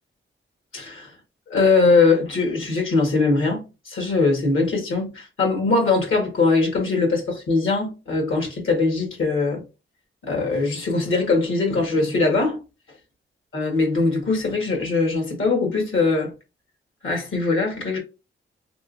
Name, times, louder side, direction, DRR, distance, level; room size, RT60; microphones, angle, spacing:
voice 1, 0.7-1.1 1.5-9.6 10.2-12.6 13.5-16.3 17.0-18.0, left 3 dB, 70° left, 1.7 m, -21 dB
3.6 x 3.1 x 2.6 m
cardioid pair, 80°, 21 cm